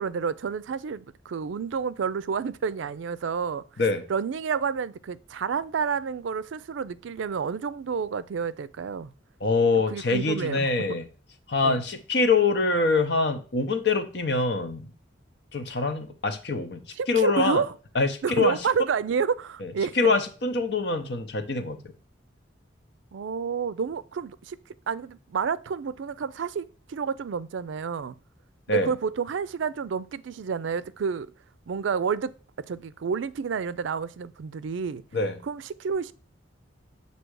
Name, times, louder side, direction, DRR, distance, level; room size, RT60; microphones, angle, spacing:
voice 1, 0.0-3.6 4.1-9.1 9.9-10.7 11.6-11.8 17.0-17.7 18.2-20.0 23.1-24.6 24.9-28.1 28.7-31.3 31.7-32.3 32.7-35.0 35.4-36.1, right 6 dB, 80° right, 0.4 m, -29 dB
voice 2, 9.4-11.0 11.5-14.9 15.5-17.6 17.9-18.6 19.6-19.7 19.9-21.9 28.7-28.9 35.1-35.4, left 3 dB, 60° left, 0.8 m, -24 dB
7.5 x 2.8 x 4.6 m
head